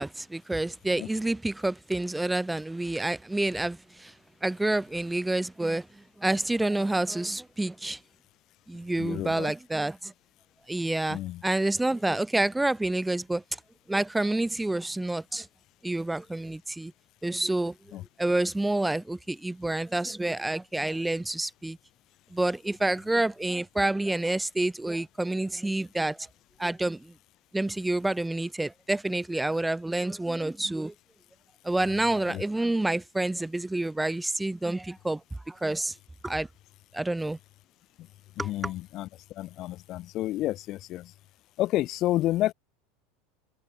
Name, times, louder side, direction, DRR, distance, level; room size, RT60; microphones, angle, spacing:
voice 1, 0.0-4.1 4.4-8.0 8.7-10.1 10.7-13.4 13.9-15.5 15.8-16.9 17.2-21.8 22.3-26.3 26.6-27.1 27.5-30.9 31.6-35.2 35.5-35.9 36.2-36.5 36.9-37.4 38.4-38.7, right 2 dB, 5° right, 0.6 m, -28 dB
voice 2, 9.0-9.5 11.1-11.4 17.9-18.0 32.3-32.4 38.4-39.1 39.4-41.1 41.6-42.5, left 15 dB, 50° left, 0.5 m, -30 dB
hypercardioid pair, 105°, 0 cm